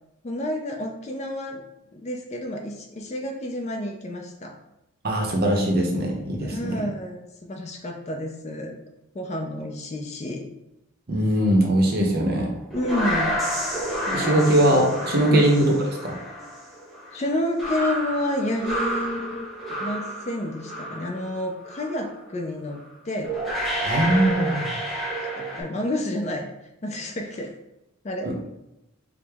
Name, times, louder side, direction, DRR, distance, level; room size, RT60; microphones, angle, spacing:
voice 1, 0.2-1.6 1.9-4.5 6.4-8.8 9.1-10.4 12.7-13.4 14.1-14.4 15.3-15.4 17.1-23.3 24.0-24.2 24.5-24.7 25.4-26.4 26.8-27.5 28.0-28.3, left 1 dB, 30° left, 2 dB, 0.4 m, -30 dB
voice 2, 5.0-6.8 11.1-12.5 14.1-16.2 23.8-24.7 28.2-28.5, right 1 dB, 45° right, 0 dB, 0.7 m, -21 dB
sound 1, 12.4-21.3 21.6-22.0 22.8-22.9 23.2-25.6, equal, ahead, 0.7 m, -30 dB
4.7 x 2.0 x 3.4 m, 0.90 s
head